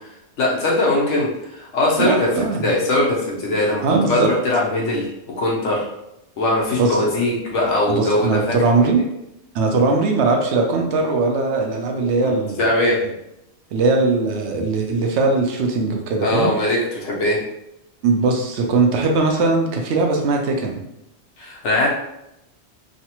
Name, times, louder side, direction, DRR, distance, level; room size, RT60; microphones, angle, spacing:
voice 1, 0.4-5.1 5.4-5.9 6.4-8.5 12.2-12.3 12.6-13.0 16.2-17.4 21.4-21.9, left 1 dB, 85° left, -3 dB, 1.2 m, -20 dB
voice 2, 2.0-2.7 3.8-4.3 6.8-7.0 7.9-9.0 9.5-12.6 13.7-16.5 18.0-20.8, right 3 dB, 75° right, 2 dB, 0.8 m, -20 dB
3.1 x 2.1 x 2.9 m, 0.84 s
omnidirectional pair, 1.2 m